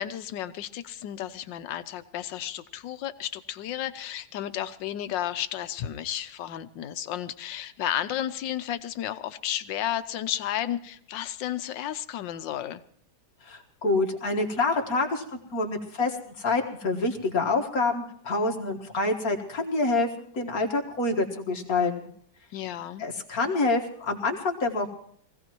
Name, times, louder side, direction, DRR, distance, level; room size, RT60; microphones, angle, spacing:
voice 1, 0.0-12.8 22.5-23.0, left 11 dB, 90° left, 12 dB, 1.5 m, -32 dB
voice 2, 13.4-15.2 15.5-20.1 20.3-22.1 23.0-24.9, left 3 dB, 55° left, 2 dB, 2.1 m, -27 dB
23.5 x 16.5 x 3.0 m, 0.65 s
omnidirectional pair, 1.9 m